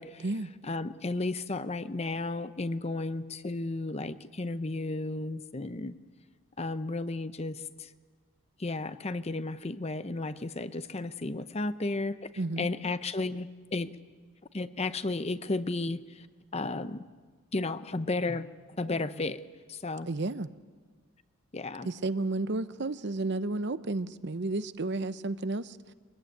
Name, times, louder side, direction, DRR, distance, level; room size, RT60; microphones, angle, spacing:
voice 1, 0.6-5.9 6.6-7.9 8.6-12.3 12.6-13.9 14.5-16.3 16.5-17.0 17.5-18.5 18.8-19.4 19.7-20.1 21.5-21.9, left 2 dB, 30° left, 12 dB, 0.7 m, -33 dB
voice 2, 12.4-12.7 20.1-20.5 21.8-25.8, right 2 dB, 55° right, 13 dB, 0.8 m, -32 dB
24.0 x 21.0 x 9.3 m, 1.5 s
head